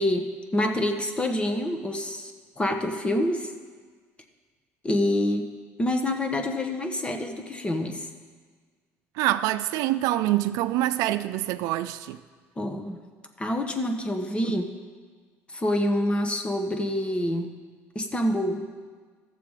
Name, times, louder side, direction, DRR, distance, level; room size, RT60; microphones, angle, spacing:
voice 1, 0.0-3.5 4.8-5.5 5.8-8.1 12.6-13.0 13.4-14.6 15.5-17.5 17.9-18.6, left 1 dB, 20° left, 1.1 m, -27 dB
voice 2, 9.2-12.2 14.4-14.6, right 15 dB, 80° right, 0.4 m, -25 dB
14.0 x 6.9 x 4.9 m
cardioid pair, 105°, 6 cm